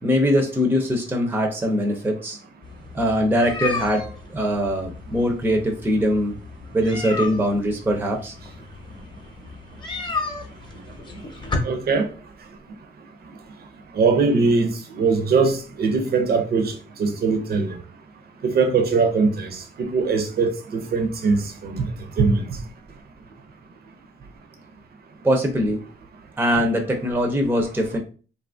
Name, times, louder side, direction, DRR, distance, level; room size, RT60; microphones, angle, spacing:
voice 1, 0.0-2.4 2.9-4.0 4.3-6.4 6.7-8.3 25.2-25.8 26.4-28.0, equal, 10° right, 0.6 m, -22 dB
sound 1, 2.6-11.6, left 4 dB, 25° left, 0.8 m, -34 dB
voice 2, 11.6-12.0 13.9-16.7 17.0-17.8 18.4-21.9 22.2-22.4, right 4 dB, 50° right, 0.6 m, -21 dB
2.8 x 2.4 x 2.5 m
cardioid pair, 90°, 20 cm